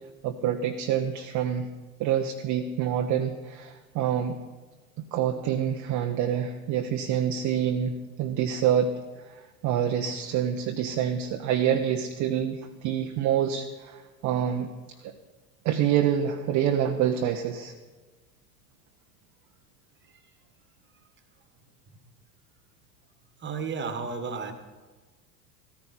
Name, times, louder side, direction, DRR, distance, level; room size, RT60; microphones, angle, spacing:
voice 1, 0.2-1.7 2.0-4.4 5.0-8.9 9.2-14.7 15.0-15.1 15.6-17.7, right 9 dB, 40° right, 5 dB, 0.9 m, -27 dB
voice 2, 23.4-24.5, right 5 dB, 25° right, 8 dB, 1.5 m, -33 dB
14.5 x 14.0 x 4.4 m, 1.3 s
figure-of-eight pair, 80°, 48 cm